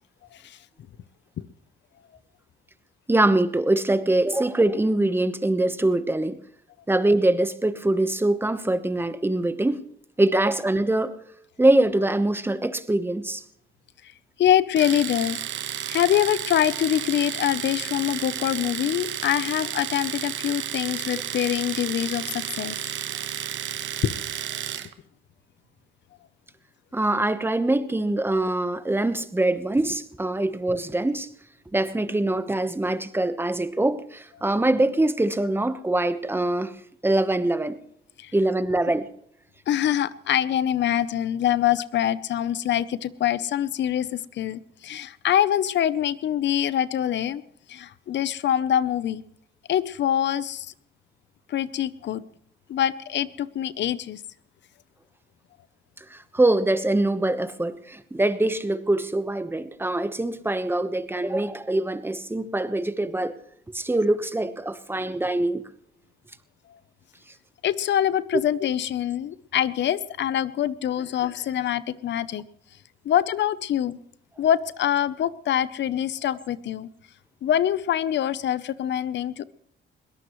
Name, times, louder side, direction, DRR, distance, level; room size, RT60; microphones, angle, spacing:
voice 1, 3.1-6.4 6.9-9.8 10.2-11.2 11.6-13.4 26.9-31.3 31.7-36.8 37.0-37.8 38.3-39.1 56.1-63.4 63.7-65.6, right 2 dB, 10° right, 1.1 m, -23 dB
voice 2, 14.4-15.4 15.9-22.8 24.0-24.1 38.2-38.3 39.7-47.4 47.7-49.2 49.7-50.7 51.5-52.2 52.7-54.2 66.7-66.8 67.6-72.4 73.0-74.0 74.4-76.9 77.4-79.4, left 10 dB, 65° left, 0.8 m, -24 dB
Domestic sounds home sounds, 14.8-24.9, right 10 dB, 70° right, 1.2 m, -32 dB
22.0 x 18.0 x 3.2 m
cardioid pair, 90°, 20 cm